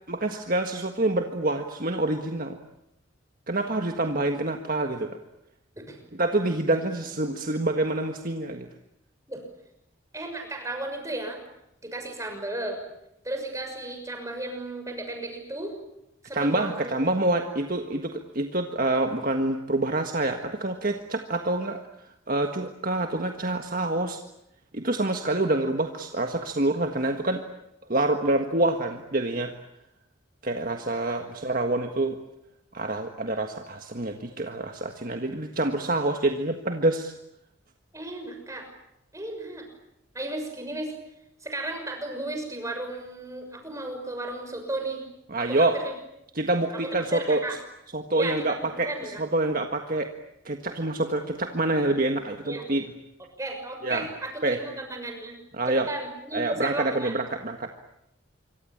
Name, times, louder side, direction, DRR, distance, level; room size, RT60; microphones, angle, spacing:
voice 1, 0.1-2.6 3.5-5.1 6.2-8.7 16.3-21.8 22.3-24.2 24.7-27.4 27.9-29.5 30.4-32.2 32.7-37.1 45.3-45.8 46.4-47.4 47.9-48.9 49.2-50.1 50.5-52.8 53.8-54.0 54.4-54.6 55.6-55.9 56.3-57.8, right 2 dB, 45° right, 5 dB, 1.7 m, -26 dB
voice 2, 10.1-11.4 11.8-12.8 13.2-15.8 16.2-17.0 37.9-38.7 39.1-39.7 40.1-40.9 41.4-45.0 45.4-46.0 46.7-47.6 48.1-49.2 52.4-52.6 53.4-55.4 55.7-57.1, right 2 dB, 15° right, 4 dB, 6.4 m, -34 dB
26.5 x 24.5 x 8.8 m, 0.83 s
head